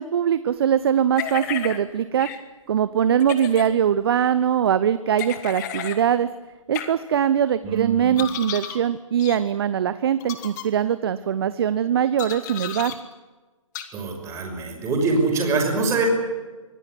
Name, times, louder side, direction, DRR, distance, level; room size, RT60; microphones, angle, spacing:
voice 1, 0.0-2.3 2.7-6.3 6.7-13.0, right 9 dB, 45° right, 14 dB, 0.9 m, -22 dB
sound 1, 1.2-1.8 2.2-2.4 3.2-3.7 5.2-6.0 6.7-6.9 8.2-8.8 9.2-9.4 10.2-10.6 12.2-13.0 13.7-13.9, left 10 dB, 35° left, 2.5 m, -32 dB
voice 2, 7.6-8.2 13.9-16.1, right 4 dB, 15° right, 1 dB, 6.0 m, -24 dB
25.0 x 16.5 x 9.9 m, 1.3 s
figure-of-eight pair, 135°, 17 cm